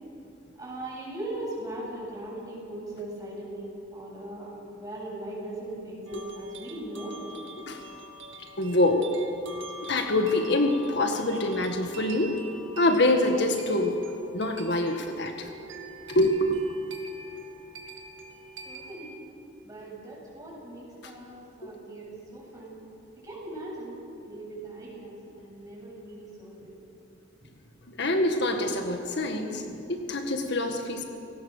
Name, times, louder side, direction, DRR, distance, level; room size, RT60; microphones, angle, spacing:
voice 1, 0.5-7.3 18.6-19.1 19.6-22.8 23.2-24.0 24.3-26.7 27.4-27.5, right 1 dB, 20° right, -4 dB, 8.0 m, -39 dB
sound 1, 6.1-18.9, right 1 dB, 80° right, 2.3 m, -45 dB
voice 2, 8.6-9.1 9.9-12.4 12.8-14.0 14.3-15.5 16.1-16.6 21.0-21.1 21.6-21.7 27.9-31.0, left 1 dB, 60° left, 4 dB, 1.8 m, -25 dB
29.5 x 19.0 x 6.7 m, 2.9 s
head